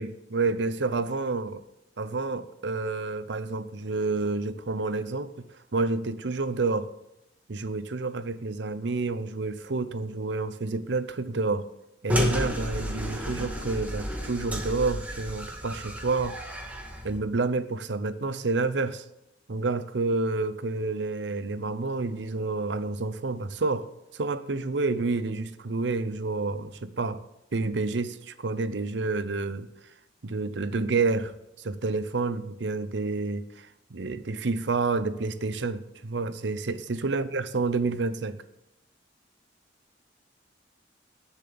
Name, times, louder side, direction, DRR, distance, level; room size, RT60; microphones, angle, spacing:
voice 1, 0.0-1.6 2.0-5.4 5.7-6.9 7.5-11.7 12.0-16.4 17.0-19.0 19.5-23.9 24.1-27.2 27.5-29.7 30.2-38.4, right 3 dB, 70° right, 13 dB, 0.7 m, -29 dB
sound 1, 12.1-17.2, equal, 10° right, 1.7 m, -31 dB
18.5 x 7.2 x 4.0 m, 0.90 s
head